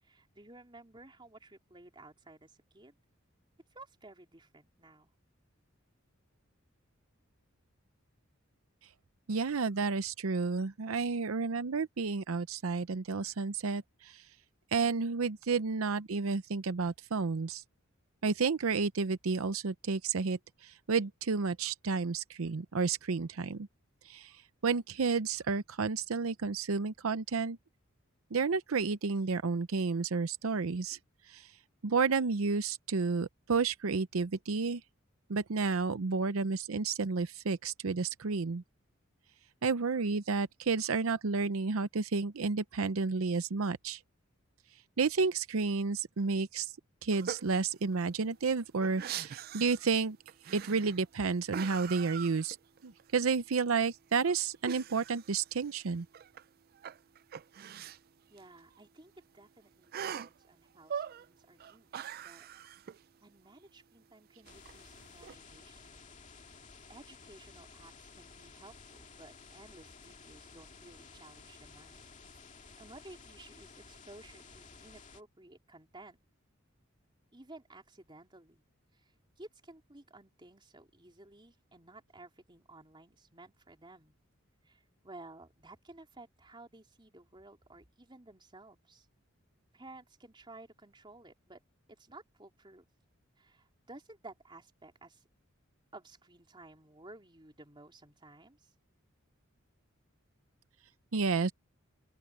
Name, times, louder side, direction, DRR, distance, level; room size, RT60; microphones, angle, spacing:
voice 1, 0.0-2.9 3.7-5.1 58.3-62.5 63.2-66.1 66.9-72.4 72.8-76.2 77.3-78.6 78.9-79.1 79.4-84.2 84.7-89.1 89.7-91.6 91.9-92.8 93.4-95.2 95.9-98.7, right 2 dB, 25° right, 3.7 m, -55 dB
voice 2, 9.3-14.3 14.7-17.6 18.2-23.7 24.0-27.6 28.3-31.0 31.3-31.5 31.8-34.8 35.3-38.6 39.6-44.0 45.0-46.7 47.0-50.2 50.5-52.6 52.8-56.1 101.1-101.5, right 4 dB, 85° right, 0.7 m, -31 dB
sound 1, 47.1-47.5 47.9-48.0 48.3-49.9 50.3-51.1 51.5-53.0 53.3-53.4 54.6-56.4 56.7-58.0 58.4-58.5 58.7-58.8 59.9-60.4 60.8-61.3 61.6-63.0 64.4-65.3, right 8 dB, 45° right, 0.4 m, -42 dB
sound 2, 64.4-75.2, left 4 dB, 35° left, 2.2 m, -54 dB
open air
head